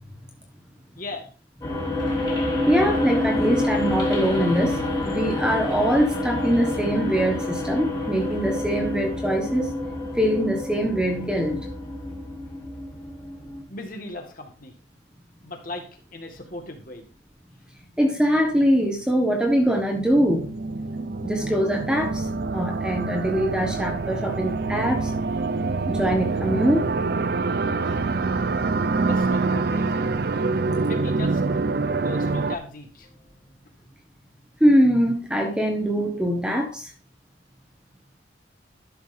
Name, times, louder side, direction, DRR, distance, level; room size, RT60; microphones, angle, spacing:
voice 1, 1.0-1.3 13.7-14.7 15.4-17.0 29.0-30.1 30.8-31.4 32.0-33.3, left 2 dB, 50° left, 3 dB, 1.7 m, -37 dB
sound 1, 1.6-13.6, left 1 dB, 25° left, 2.2 m, -27 dB
voice 2, 2.7-9.7 10.1-11.6 18.0-20.5 21.2-25.1 25.9-26.9 27.8-28.1 28.9-29.0 30.5-30.6 31.8-31.9 34.6-36.9, equal, 5° right, 2 dB, 1.4 m, -23 dB
sound 2, 19.8-32.6, right 3 dB, 55° right, 0.5 m, -26 dB
12.5 x 6.4 x 2.7 m, 0.36 s
head